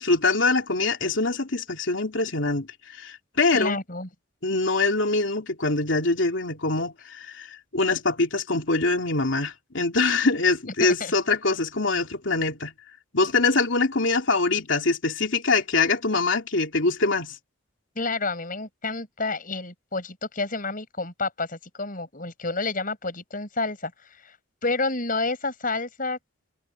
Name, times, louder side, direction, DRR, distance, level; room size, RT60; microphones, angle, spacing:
voice 1, 0.0-2.7 2.9-3.8 4.4-12.7 13.1-17.4, left 3 dB, 75° left, 2.9 m, -24 dB
voice 2, 3.5-4.1 10.8-11.1 18.0-24.4 24.6-26.2, left 3 dB, 45° left, 7.2 m, -29 dB
head